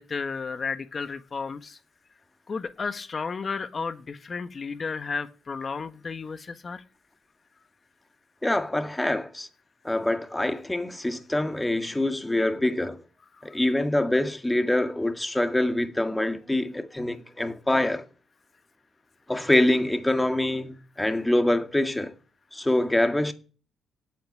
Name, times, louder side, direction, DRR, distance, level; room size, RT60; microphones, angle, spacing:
voice 1, 0.0-1.8 2.5-6.8, left 5 dB, 40° left, 1.3 m, -33 dB
voice 2, 8.4-9.5 9.8-13.0 13.4-18.1 19.3-22.2 22.5-23.3, left 1 dB, 10° left, 1.9 m, -25 dB
17.0 x 8.3 x 9.0 m
cardioid pair, 90°, 0 cm